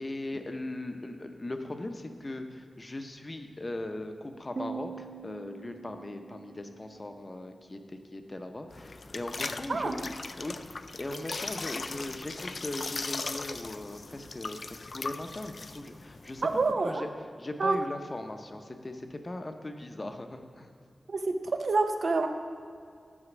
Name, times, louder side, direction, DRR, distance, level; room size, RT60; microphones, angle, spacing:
voice 1, 0.0-16.5 16.8-17.1 17.4-20.7, left 1 dB, 30° left, 6 dB, 0.7 m, -39 dB
Piano, 4.6-8.0, right 5 dB, 45° right, 0.3 m, -44 dB
sound 1, 8.7-16.7, left 3 dB, 55° left, 0.3 m, -39 dB
voice 2, 16.4-17.0 17.6-17.8 21.1-22.3, right 3 dB, 70° right, 6 dB, 0.7 m, -27 dB
9.8 x 5.0 x 6.1 m, 2.2 s
wide cardioid pair, 85°, 0 cm